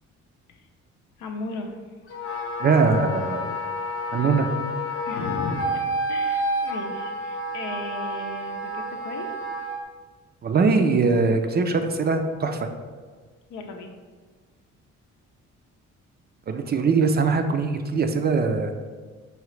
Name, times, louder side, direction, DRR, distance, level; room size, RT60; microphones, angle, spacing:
voice 1, 1.2-1.8 5.1-9.4 13.5-13.9, left 3 dB, 85° left, 4 dB, 0.6 m, -36 dB
Wind instrument woodwind instrument, 2.1-9.8, equal, 45° left, 0.7 m, -29 dB
voice 2, 2.6-3.6 4.1-4.5 10.4-12.7 16.5-18.7, right 4 dB, 35° right, 6 dB, 0.4 m, -22 dB
4.9 x 2.8 x 3.1 m, 1.5 s
cardioid pair, 90°, 30 cm